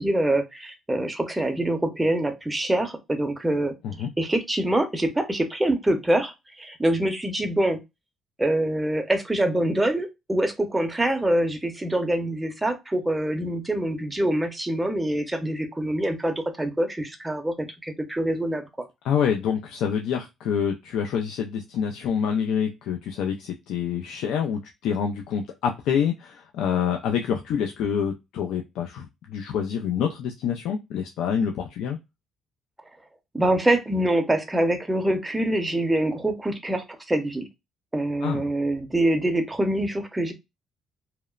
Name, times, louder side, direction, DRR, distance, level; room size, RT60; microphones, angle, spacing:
voice 1, 0.0-7.8 8.4-18.7 33.3-37.5 37.9-40.3, right 1 dB, 10° right, 0.6 m, -25 dB
voice 2, 19.0-32.0 38.2-38.4, left 7 dB, 80° left, 0.3 m, -27 dB
2.8 x 2.0 x 2.2 m
cardioid pair, 90°, 0 cm